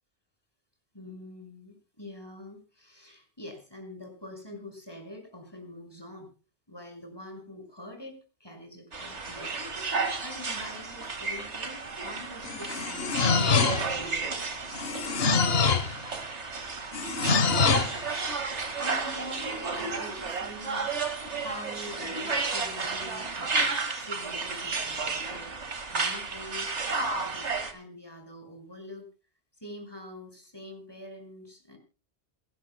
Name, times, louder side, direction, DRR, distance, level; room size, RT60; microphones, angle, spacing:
voice 1, 0.9-6.3 6.7-9.7 10.2-14.3 18.7-21.0 21.4-26.7 27.1-29.0 29.6-31.8, left 1 dB, 20° left, 3 dB, 6.1 m, -45 dB
sound 1, 8.9-27.7, right 4 dB, 85° right, 2.3 m, -32 dB
sound 2, 12.4-14.0 14.7-16.0 16.9-18.0, left 5 dB, 60° left, 1.4 m, -25 dB
27.0 x 13.0 x 2.2 m, 0.35 s
omnidirectional pair, 1.1 m